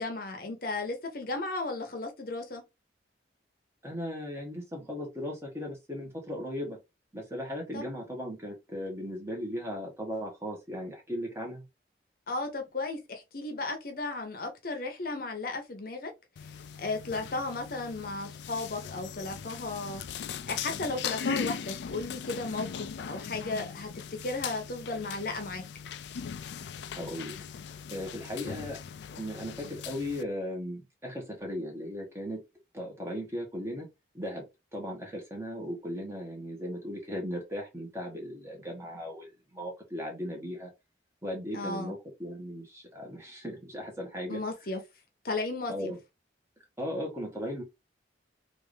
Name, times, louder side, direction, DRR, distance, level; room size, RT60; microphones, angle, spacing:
voice 1, 0.0-2.6 7.7-7.8 12.3-16.1 16.4-25.6 41.5-41.9 44.3-44.8 45.2-45.9, left 3 dB, 50° left, 0.8 m, -35 dB
voice 2, 3.8-6.8 7.1-11.6 26.9-27.3 27.9-28.8 29.1-32.4 32.7-33.9 34.1-40.7 41.2-44.4 45.7-46.0 46.8-47.6, equal, 15° right, 1.2 m, -37 dB
sound 1, 16.4-30.2, left 7 dB, 70° left, 0.3 m, -39 dB
3.4 x 2.6 x 3.2 m
head